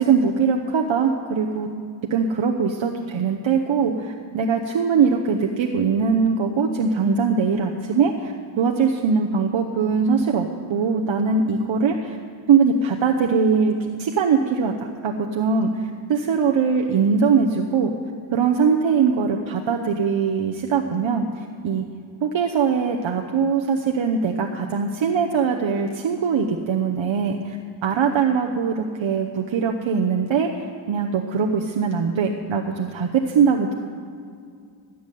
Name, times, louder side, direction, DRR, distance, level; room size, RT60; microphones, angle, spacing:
voice 1, 0.0-1.7 2.1-12.2 12.5-14.7 15.0-17.9 18.3-21.8 22.2-30.5 30.9-33.7, right 5 dB, 85° right, 2 dB, 0.9 m, -21 dB
14.0 x 7.1 x 9.9 m, 2.2 s
cardioid pair, 60°, 45 cm